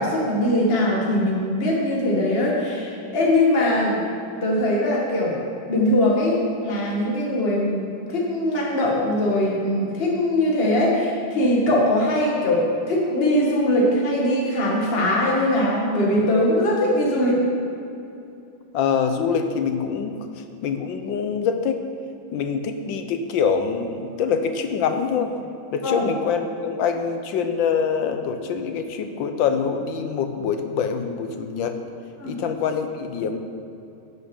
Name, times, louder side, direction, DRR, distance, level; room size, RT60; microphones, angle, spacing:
voice 1, 0.0-4.0 4.4-5.4 5.7-17.4 25.8-26.0 32.2-32.3, left 1 dB, 30° left, -3 dB, 1.9 m, -21 dB
voice 2, 18.7-20.1 20.6-21.8 22.3-25.3 25.7-31.8 32.3-33.4, left 6 dB, 75° left, 7 dB, 1.6 m, -24 dB
12.5 x 8.1 x 5.4 m, 2.7 s
omnidirectional pair, 2.2 m